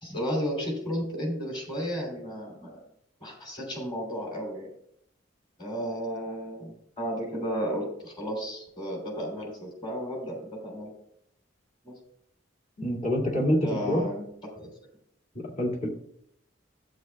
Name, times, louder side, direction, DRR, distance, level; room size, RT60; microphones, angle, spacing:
voice 1, 0.0-2.8 3.2-4.7 5.6-6.7 7.0-10.9 11.8-12.0 13.6-14.2 14.6-14.7, equal, 25° left, -1 dB, 3.2 m, -33 dB
voice 2, 12.8-14.0 15.3-15.9, equal, 40° left, -1 dB, 2.3 m, -26 dB
15.0 x 8.3 x 2.3 m, 0.72 s
head